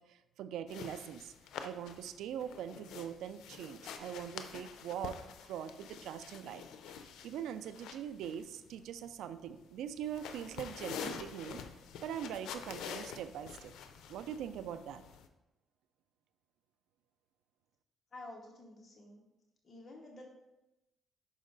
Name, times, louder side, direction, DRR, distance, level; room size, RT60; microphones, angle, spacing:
voice 1, 0.1-1.3 1.6-5.2 5.5-11.6 12.0-13.7 14.1-15.0, right 9 dB, 85° right, 12 dB, 0.4 m, -42 dB
sound 1, 0.7-15.3, left 7 dB, 85° left, 0.5 m, -47 dB
voice 2, 18.1-19.2 19.6-20.2, left 2 dB, 35° left, -1 dB, 1.1 m, -50 dB
6.3 x 5.1 x 3.9 m, 0.96 s
cardioid pair, 90°, 0 cm